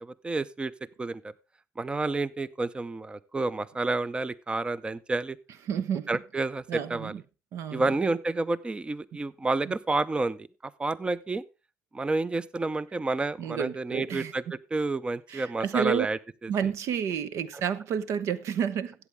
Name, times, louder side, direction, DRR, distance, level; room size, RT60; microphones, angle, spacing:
voice 1, 0.0-0.7 1.0-1.3 1.8-5.4 6.1-7.2 7.7-11.4 11.9-16.5 17.5-17.6, right 3 dB, 20° right, 0.6 m, -30 dB
voice 2, 5.7-6.1 6.7-7.2 7.5-7.9 9.6-9.7 13.4-14.3 15.3-16.1 16.5-18.9, right 8 dB, 65° right, 0.8 m, -30 dB
14.0 x 8.3 x 3.5 m
supercardioid pair, 80°, 5 cm